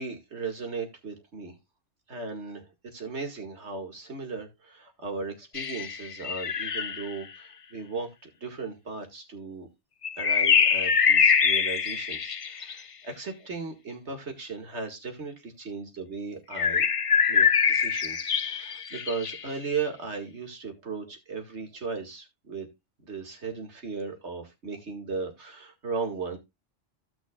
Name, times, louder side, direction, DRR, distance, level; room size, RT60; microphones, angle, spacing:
voice 1, 0.0-1.6 2.1-2.6 2.9-9.7 10.2-16.9 17.3-22.7 23.0-26.4, right 4 dB, 60° right, 4 dB, 2.4 m, -36 dB
sound 1, 5.5-7.1 10.0-12.8 16.5-19.5, left 6 dB, 50° left, 0.4 m, -24 dB
15.5 x 6.0 x 2.4 m, 0.21 s
omnidirectional pair, 1.3 m